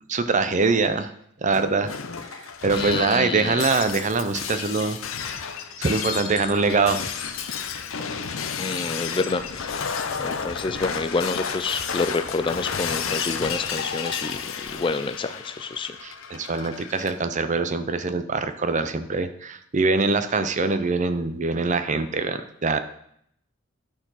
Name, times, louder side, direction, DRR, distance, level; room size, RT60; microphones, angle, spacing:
voice 1, 0.1-1.1 1.4-1.9 2.6-5.4 5.8-7.0 16.0-22.8, right 4 dB, 35° right, 10 dB, 0.6 m, -23 dB
Shatter, 1.5-17.1, left 6 dB, 85° left, 0.7 m, -32 dB
voice 2, 2.7-3.6 8.6-9.9 10.2-16.0, left 3 dB, 25° left, 11 dB, 0.4 m, -28 dB
10.5 x 4.5 x 5.7 m, 0.71 s
head